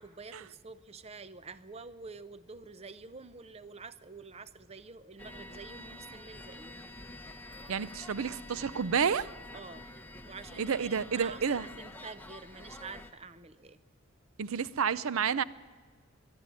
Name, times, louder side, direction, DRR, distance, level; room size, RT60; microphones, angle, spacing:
voice 1, 0.0-6.9 9.5-9.8 10.2-13.8, right 4 dB, 30° right, 14 dB, 0.6 m, -48 dB
sound 1, 5.2-13.1, left 1 dB, 10° left, 1.0 m, -48 dB
voice 2, 7.7-9.3 10.6-11.7 14.4-15.4, right 6 dB, 80° right, 17 dB, 0.5 m, -30 dB
23.5 x 11.5 x 9.6 m, 1.5 s
head